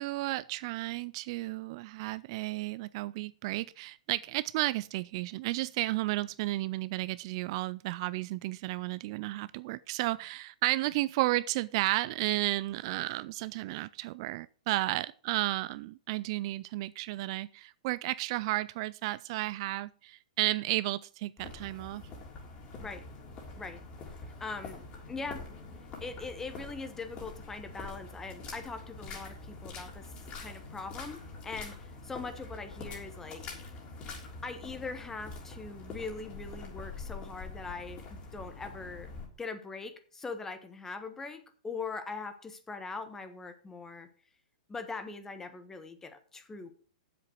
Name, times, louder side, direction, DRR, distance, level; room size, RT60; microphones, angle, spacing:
voice 1, 0.0-22.0, right 18 dB, 45° right, 0.3 m, -33 dB
sound 1, 21.4-39.3, left 3 dB, 30° left, 3.5 m, -45 dB
voice 2, 24.4-25.4 26.0-33.4 34.4-39.1 39.4-44.1 44.7-46.7, left 4 dB, 10° left, 1.3 m, -41 dB
7.7 x 7.6 x 6.4 m
hypercardioid pair, 135°, 4 cm